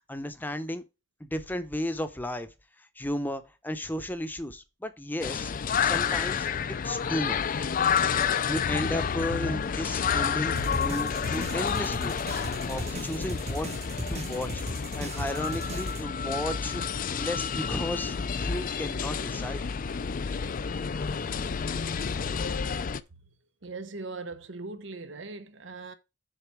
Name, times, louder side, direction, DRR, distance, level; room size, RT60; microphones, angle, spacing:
voice 1, 0.1-0.8 1.2-2.5 3.0-5.5 5.8-7.4 8.5-12.2 12.7-13.7 14.1-14.6 15.0-16.8 17.1-19.7, left 1 dB, 10° left, 0.8 m, -34 dB
sound 1, 5.2-23.0, left 6 dB, 45° left, 0.4 m, -30 dB
sound 2, 10.6-16.0, right 1 dB, 35° right, 1.1 m, -37 dB
voice 2, 23.6-25.9, right 3 dB, 75° right, 0.9 m, -40 dB
6.8 x 4.2 x 6.1 m
head